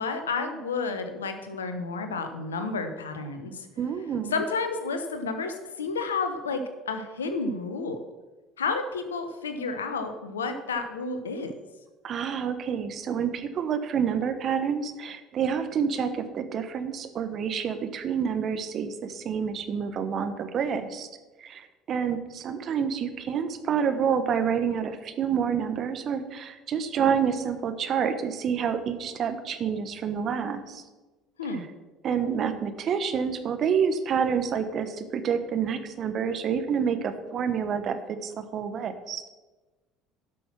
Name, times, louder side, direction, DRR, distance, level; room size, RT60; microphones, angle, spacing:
voice 1, 0.0-3.7 4.3-8.0 8.6-11.5 31.4-31.6, left 4 dB, 90° left, 8 dB, 1.0 m, -31 dB
voice 2, 3.8-4.4 12.0-21.1 21.4-30.8 32.0-39.2, right 7 dB, 50° right, 9 dB, 1.2 m, -28 dB
11.5 x 6.1 x 6.0 m, 1.2 s
hypercardioid pair, 65°, 0 cm